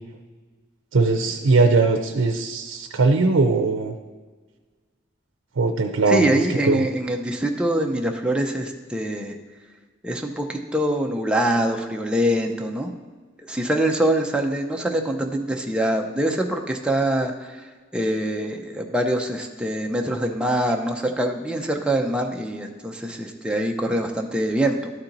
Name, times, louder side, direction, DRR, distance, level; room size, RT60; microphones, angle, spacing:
voice 1, 0.9-4.0 5.6-6.9, right 3 dB, 80° right, 4 dB, 0.6 m, -20 dB
voice 2, 6.1-9.4 10.0-12.9 13.5-17.5 17.9-24.9, right 1 dB, 5° right, 2 dB, 0.6 m, -24 dB
12.5 x 4.3 x 3.9 m, 1.4 s
head